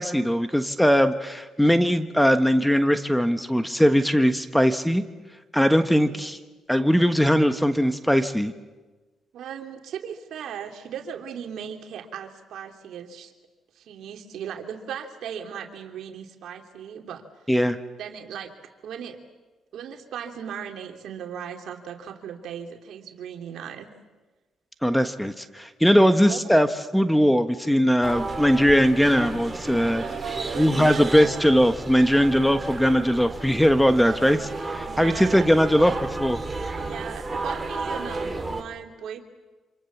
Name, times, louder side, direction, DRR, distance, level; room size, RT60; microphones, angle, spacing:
voice 1, 0.0-5.0 5.5-6.4 6.7-8.5 17.5-17.8 24.8-26.7 26.9-30.0 30.6-34.4 34.7-36.4, equal, 5° left, 9 dB, 1.3 m, -20 dB
voice 2, 5.8-6.2 9.3-13.3 13.7-17.2 18.0-18.5 18.8-19.2 19.7-23.9 25.8-26.4 29.9-31.3 33.9-34.5 34.8-35.5 36.8-39.2, right 8 dB, 75° right, 4 dB, 2.8 m, -37 dB
sound 1, 28.0-38.6, right 3 dB, 20° right, 3.0 m, -33 dB
27.5 x 26.5 x 7.3 m, 1.2 s
cardioid pair, 90°, 0 cm